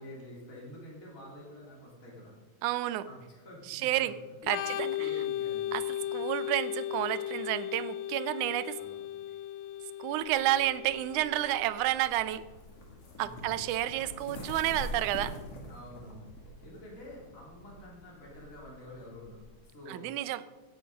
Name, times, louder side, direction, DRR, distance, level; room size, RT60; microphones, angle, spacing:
voice 1, 0.0-2.3 3.0-4.2 4.5-5.7 8.8-9.0 13.1-13.6 15.7-20.1, left 1 dB, 25° left, -4 dB, 3.6 m, -48 dB
voice 2, 2.6-3.1 3.7-4.1 4.5-5.1 5.7-8.8 10.0-12.4 13.2-15.4 19.9-20.4, right 14 dB, 90° right, 14 dB, 2.1 m, -30 dB
Organ, 4.4-11.9, left 12 dB, 80° left, 1.6 m, -36 dB
sound 1, 10.2-19.6, left 1 dB, 55° left, 2.8 m, -46 dB
16.0 x 7.5 x 5.3 m, 1.2 s
omnidirectional pair, 3.4 m